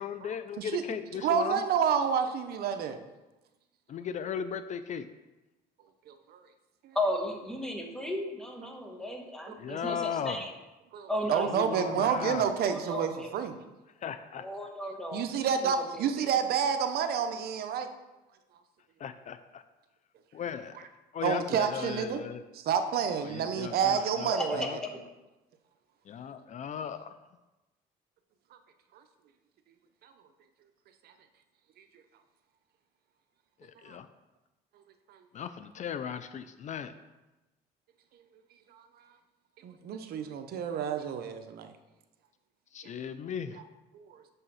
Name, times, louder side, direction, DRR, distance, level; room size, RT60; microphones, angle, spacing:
voice 1, 0.0-1.6 3.9-5.1 9.6-10.5 11.5-12.5 14.0-14.7 19.0-19.6 20.3-20.8 21.1-22.4 23.2-24.8 26.1-27.0 33.6-34.1 35.3-36.9 42.7-43.6, left 8 dB, 45° left, 11 dB, 0.5 m, -37 dB
voice 2, 0.6-3.0 6.1-6.4 9.5-9.8 10.9-13.5 15.1-17.9 21.2-22.2 22.7-24.7 28.9-29.0 30.0-30.1 31.0-31.1 31.8-31.9 33.9-34.0 38.7-38.9 39.6-41.7 43.9-44.2, right 7 dB, 65° right, 8 dB, 0.8 m, -29 dB
voice 3, 6.9-10.5 11.1-11.5 12.6-13.3 14.4-15.3 15.6-16.3 24.3-24.9, left 1 dB, 5° left, 2 dB, 1.3 m, -34 dB
6.9 x 5.5 x 5.6 m, 1.1 s
cardioid pair, 110°, 17 cm